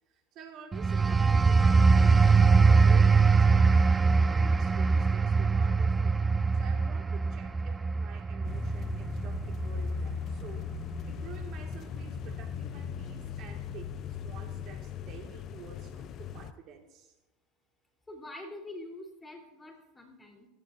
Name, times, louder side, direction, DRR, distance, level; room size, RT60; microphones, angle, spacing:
voice 1, 0.1-3.8 4.3-6.2 6.5-10.7 11.1-17.1, right 7 dB, 50° right, 3 dB, 2.1 m, -50 dB
sound 1, 0.7-11.1 11.5-11.8, right 4 dB, 20° right, 0.3 m, -23 dB
sound 2, 8.4-16.5, left 8 dB, 45° left, 0.6 m, -39 dB
voice 2, 18.1-20.5, left 1 dB, 15° left, 2 dB, 3.7 m, -45 dB
16.5 x 16.0 x 2.7 m, 0.96 s
hypercardioid pair, 85°, 0 cm